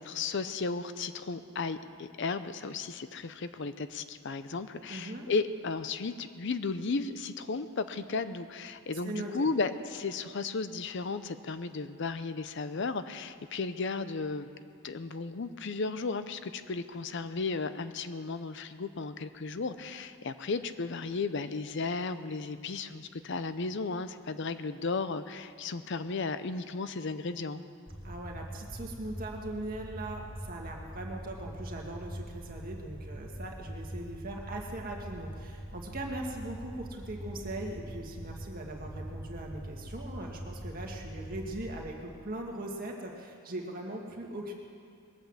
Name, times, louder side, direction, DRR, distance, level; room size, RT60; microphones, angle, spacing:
voice 1, 0.0-14.5 14.8-27.6, left 4 dB, 55° left, 12 dB, 0.6 m, -34 dB
voice 2, 4.9-5.3 9.0-9.5 28.0-44.5, right 1 dB, 40° right, 0 dB, 2.0 m, -40 dB
sound 1, 27.9-41.8, equal, 10° left, 1.0 m, -43 dB
21.0 x 8.9 x 7.4 m, 2.3 s
head